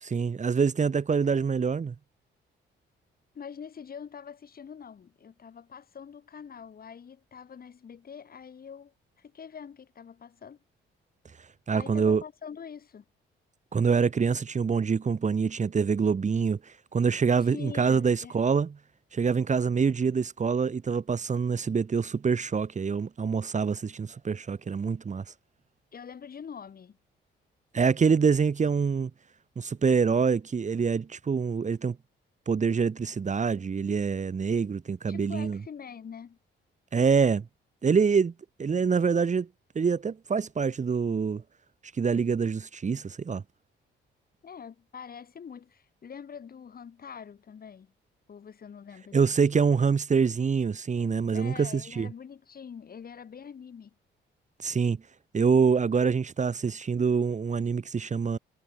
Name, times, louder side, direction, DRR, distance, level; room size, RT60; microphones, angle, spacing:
voice 1, 0.0-1.9 11.7-12.2 13.7-18.7 19.1-25.2 27.7-29.1 29.6-32.0 32.5-35.6 36.9-37.4 37.8-38.3 38.6-39.5 39.7-41.4 42.0-43.4 49.1-52.1 54.6-55.0 55.3-58.4, right 5 dB, 35° right, 2.5 m, -25 dB
voice 2, 3.3-10.6 11.7-13.0 17.4-18.3 25.9-27.0 35.1-36.4 44.4-47.9 48.3-49.3 51.3-53.9, left 7 dB, 50° left, 7.7 m, -44 dB
cardioid pair, 90°, 20 cm